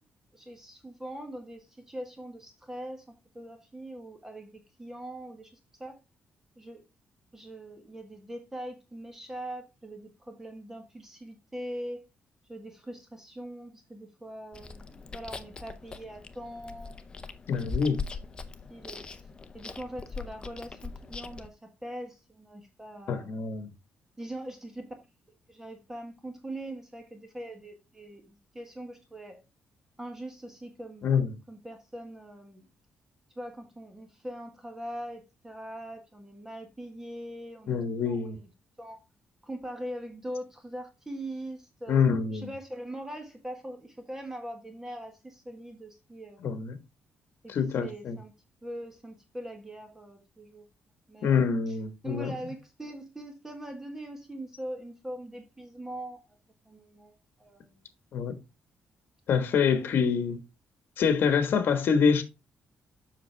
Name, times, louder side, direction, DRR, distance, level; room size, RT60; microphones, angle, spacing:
voice 1, 0.3-3.0 3.3-6.0 6.6-6.8 7.3-12.0 12.5-17.0 18.7-19.3 19.5-23.5 24.2-24.9 25.5-29.4 30.0-31.1 31.5-32.6 33.3-38.5 38.8-39.0 39.4-46.6 47.4-47.5 47.8-48.3 48.6-50.6 51.1-51.8 52.0-56.2 56.6-57.8 59.5-60.0, right 1 dB, 10° right, 1.4 m, -42 dB
Chewing mastication, 14.5-21.5, left 4 dB, 25° left, 0.7 m, -41 dB
voice 2, 17.5-18.0 23.1-23.7 31.0-31.3 37.7-38.4 41.9-42.5 46.4-46.8 47.5-48.2 51.2-52.3 58.1-58.4 59.3-60.4 61.0-62.2, left 6 dB, 60° left, 1.4 m, -26 dB
7.5 x 6.2 x 3.3 m
cardioid pair, 140°, 4 cm